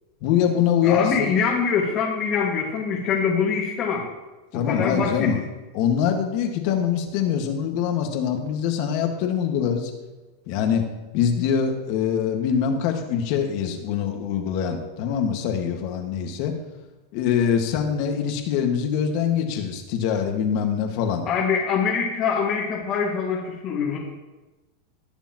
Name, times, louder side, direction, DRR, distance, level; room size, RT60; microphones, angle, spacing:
voice 1, 0.2-1.3 4.5-5.4 5.7-9.9 10.5-10.9 11.1-16.5 17.1-21.2, left 8 dB, 55° left, 4 dB, 1.7 m, -24 dB
voice 2, 0.8-4.1 4.5-5.3 21.3-24.0, left 6 dB, 40° left, -4 dB, 1.9 m, -24 dB
19.5 x 7.0 x 3.0 m, 1.1 s
supercardioid pair, 125°, 0 cm